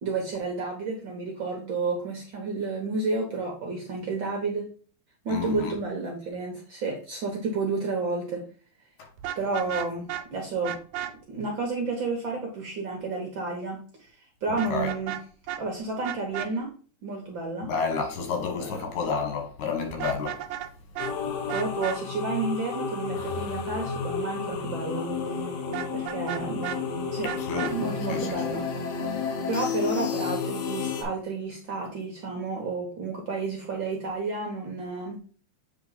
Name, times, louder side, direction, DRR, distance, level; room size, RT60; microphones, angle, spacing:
voice 1, 0.0-4.7 5.2-8.4 9.4-10.8 11.3-13.8 14.4-15.2 15.6-16.7 17.0-17.7 18.6-18.8 21.5-25.1 25.9-27.3 27.7-28.7 29.5-35.2, right 3 dB, 60° right, 1.3 m, -31 dB
voice 2, 5.3-5.7 14.7-14.9 17.6-20.4 27.2-27.7 28.1-28.4, left 5 dB, 85° left, 2.8 m, -30 dB
Vehicle horn car horn honking, 9.2-10.2 10.6-11.1 14.6-15.2 15.5-15.6 16.0-16.5 19.9-20.7 20.9-21.1 21.5-22.0 25.7-26.8 27.2-27.7, right 12 dB, 90° right, 2.1 m, -33 dB
sound 1, 21.0-31.0, left 5 dB, 70° left, 2.1 m, -31 dB
7.9 x 3.5 x 3.9 m
omnidirectional pair, 3.4 m